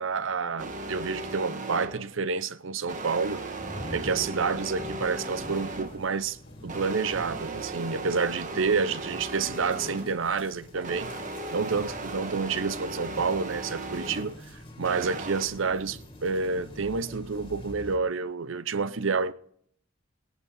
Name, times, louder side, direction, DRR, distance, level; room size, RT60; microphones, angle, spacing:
voice 1, 0.0-3.6 3.9-11.1 11.5-19.3, right 5 dB, 70° right, 0.7 m, -29 dB
sound 1, 0.6-2.2 2.9-6.1 6.7-10.2 10.7-14.4 14.8-15.5, right 2 dB, 40° right, 1.6 m, -37 dB
Thunder / Rain, 3.1-14.1 14.5-14.9, left 1 dB, 55° left, 2.2 m, -47 dB
sound 2, 5.0-18.0, left 1 dB, 25° left, 2.4 m, -49 dB
19.5 x 10.5 x 4.2 m
head